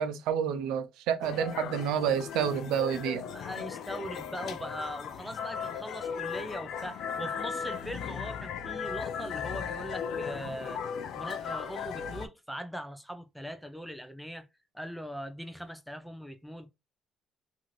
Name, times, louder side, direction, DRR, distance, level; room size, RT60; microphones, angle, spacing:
voice 1, 0.0-3.2, right 8 dB, 90° right, 0.5 m, -29 dB
sound 1, 1.2-12.3, left 7 dB, 70° left, 0.4 m, -37 dB
voice 2, 3.3-10.8 11.2-14.5 14.7-16.7, equal, ahead, 0.5 m, -40 dB
2.6 x 2.6 x 3.0 m
cardioid pair, 100°, 0 cm